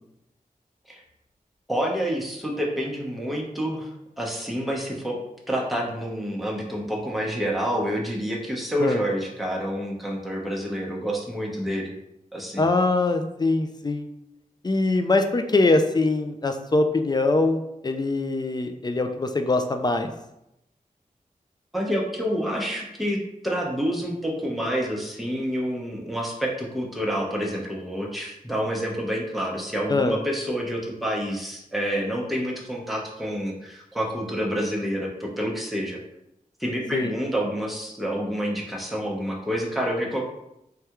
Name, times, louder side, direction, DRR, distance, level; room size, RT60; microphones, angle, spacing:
voice 1, 1.7-3.9 4.2-5.2 5.5-11.9 12.3-12.7 21.7-36.0 36.6-40.2, equal, ahead, -2 dB, 0.8 m, -28 dB
voice 2, 12.6-14.1 14.6-17.6 17.8-20.1 29.9-30.2 36.9-37.1, left 2 dB, 30° left, 7 dB, 0.4 m, -22 dB
3.3 x 2.3 x 2.9 m, 0.84 s
cardioid pair, 50°, 15 cm